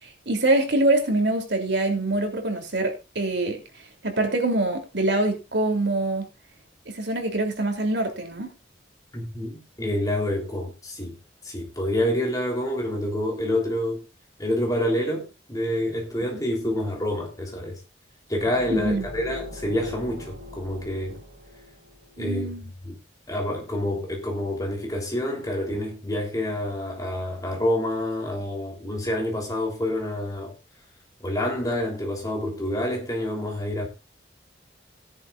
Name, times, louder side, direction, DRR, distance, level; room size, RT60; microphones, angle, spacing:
voice 1, 0.0-3.6 4.0-6.3 6.9-8.5 16.3-16.4 18.7-19.1 22.2-22.7, right 2 dB, 70° right, 3.0 m, -24 dB
voice 2, 9.1-11.2 11.4-14.0 14.4-17.8 18.3-21.2 22.2-22.5 22.8-23.0 23.3-30.5 31.2-33.9, left 1 dB, 20° left, 3.2 m, -27 dB
sound 1, 18.4-22.1, left 3 dB, 45° right, 6.7 m, -40 dB
17.5 x 10.5 x 2.4 m
head